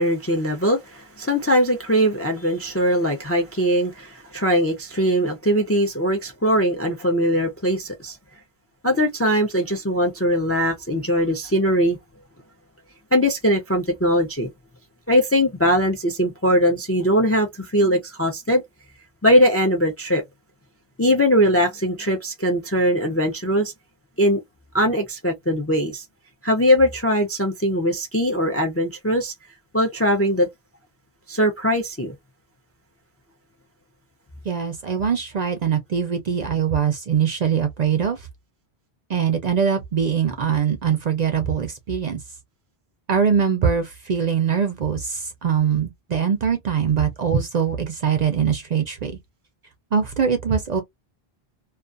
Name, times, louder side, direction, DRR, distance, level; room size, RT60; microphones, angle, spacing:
voice 1, 0.0-8.2 8.8-12.0 13.1-14.5 15.1-18.6 19.2-20.2 21.0-23.7 24.2-24.4 24.7-26.0 26.4-29.3 29.7-30.5 31.3-32.1, equal, 25° left, 0.3 m, -20 dB
voice 2, 34.5-38.3 39.1-42.2 43.1-49.1 49.9-50.8, right 7 dB, 55° right, 0.5 m, -22 dB
2.3 x 2.3 x 2.4 m
omnidirectional pair, 1.0 m